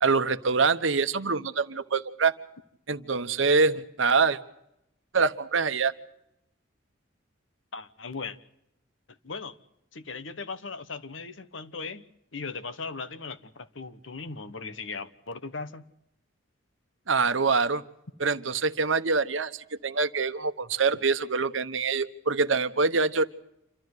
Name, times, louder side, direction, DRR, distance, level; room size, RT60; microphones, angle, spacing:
voice 1, 0.0-2.3 2.9-4.4 5.1-5.9 17.1-17.8 18.2-23.3, right 4 dB, 75° right, 10 dB, 1.1 m, -25 dB
voice 2, 7.7-8.4 9.1-9.5 9.9-12.0 12.3-15.8, left 4 dB, 75° left, 13 dB, 1.2 m, -38 dB
28.0 x 13.0 x 9.5 m, 0.82 s
head